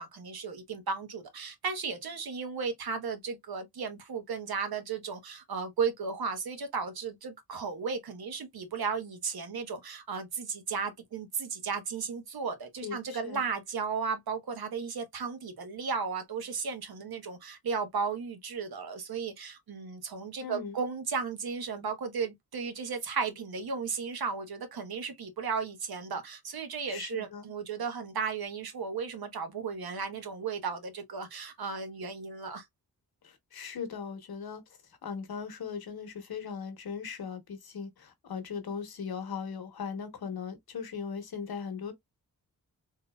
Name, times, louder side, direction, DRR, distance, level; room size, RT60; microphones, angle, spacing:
voice 1, 0.0-32.6, right 5 dB, 80° right, 1.1 m, -35 dB
voice 2, 12.8-13.5 20.4-20.8 26.9-27.5 33.2-34.6 35.0-41.9, left 6 dB, 80° left, 1.0 m, -39 dB
3.8 x 2.8 x 2.2 m
wide cardioid pair, 100°, 36 cm